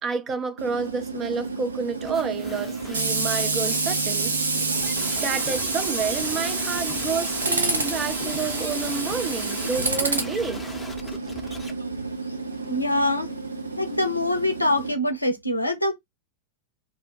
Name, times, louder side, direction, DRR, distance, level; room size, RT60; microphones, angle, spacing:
voice 1, 0.0-4.3 5.2-10.6 13.3-13.4, right 5 dB, 25° right, 0.5 m, -29 dB
Tools, 0.6-14.9, right 3 dB, 75° right, 0.6 m, -28 dB
sound 1, 2.0-11.7, left 2 dB, 5° left, 0.7 m, -40 dB
sound 2, 4.2-10.2, left 6 dB, 40° left, 0.6 m, -45 dB
voice 2, 12.7-13.3 13.8-15.9, left 1 dB, 85° left, 0.5 m, -24 dB
2.4 x 2.2 x 3.9 m
figure-of-eight pair, 90°, 0 cm